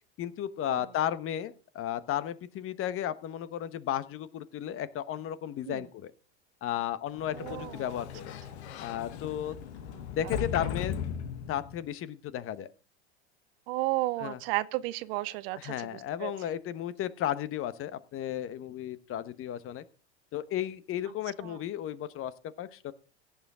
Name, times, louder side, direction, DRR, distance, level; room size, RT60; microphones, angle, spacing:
voice 1, 0.2-6.1 6.6-8.3 8.8-9.5 10.1-10.9 11.5-12.7 14.2-14.4 15.5-19.8 20.3-22.3 22.6-22.9, left 11 dB, 40° left, 1.1 m, -34 dB
Sliding door, 7.1-11.9, left 8 dB, 70° left, 1.5 m, -38 dB
voice 2, 7.3-8.0 10.2-10.3 10.6-10.7 13.7-16.3 21.4-21.6, right 19 dB, 60° right, 0.8 m, -33 dB
17.0 x 7.3 x 3.7 m
hypercardioid pair, 90°, 34 cm